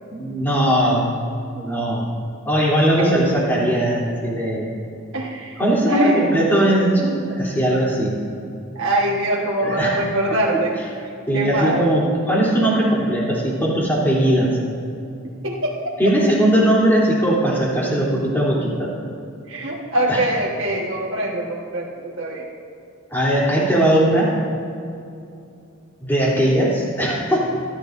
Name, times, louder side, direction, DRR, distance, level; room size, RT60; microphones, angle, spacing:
voice 1, 0.1-1.1 1.6-2.1 2.4-4.7 5.6-8.1 9.6-9.9 11.3-14.5 16.0-18.9 20.1-20.2 23.1-24.3 26.0-27.5, right 1 dB, 10° left, -6 dB, 3.2 m, -19 dB
voice 2, 5.1-5.6 5.9-6.3 8.7-10.8 11.3-12.0 15.4-16.1 19.5-22.5, right 1 dB, 65° right, -4 dB, 1.5 m, -23 dB
25.5 x 11.0 x 2.6 m, 2.6 s
head